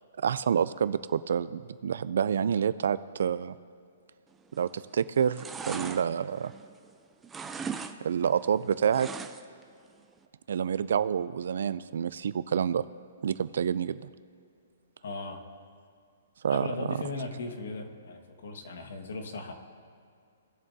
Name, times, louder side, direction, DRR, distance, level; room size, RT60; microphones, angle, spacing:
voice 1, 0.2-3.5 4.6-6.5 8.0-9.1 10.5-12.8 13.2-14.1 16.4-17.0, right 7 dB, 70° right, 15 dB, 0.4 m, -28 dB
sound 1, 4.5-4.9 5.2-6.9 7.2-8.0 8.2-9.6 10.0-10.1, right 6 dB, 10° right, 0.4 m, -39 dB
voice 2, 15.0-15.4 16.5-19.5, left 3 dB, 75° left, 5 dB, 1.5 m, -37 dB
18.5 x 7.3 x 2.7 m, 2.3 s
hypercardioid pair, 165°, 0 cm